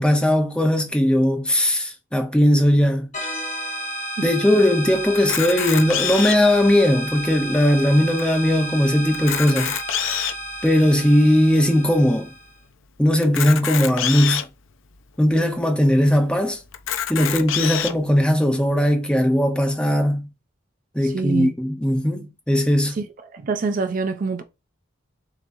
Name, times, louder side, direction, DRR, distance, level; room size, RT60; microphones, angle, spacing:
voice 1, 0.0-3.1 4.2-9.7 10.6-12.3 13.0-14.4 15.2-16.6 17.1-20.3 20.9-23.0, left 1 dB, 5° left, 0.7 m, -18 dB
sound 1, 3.1-12.5, right 1 dB, 35° left, 1.0 m, -32 dB
Camera, 5.2-6.5 7.2-7.3 7.5-7.6 8.2-8.3 9.1-10.5 11.1-11.2 13.2-14.5 15.2-15.3 15.5-15.6 16.7-17.9, left 10 dB, 80° left, 0.6 m, -26 dB
voice 2, 21.0-21.5 23.0-23.1 23.3-24.4, right 4 dB, 40° right, 0.4 m, -25 dB
6.7 x 2.9 x 2.6 m
head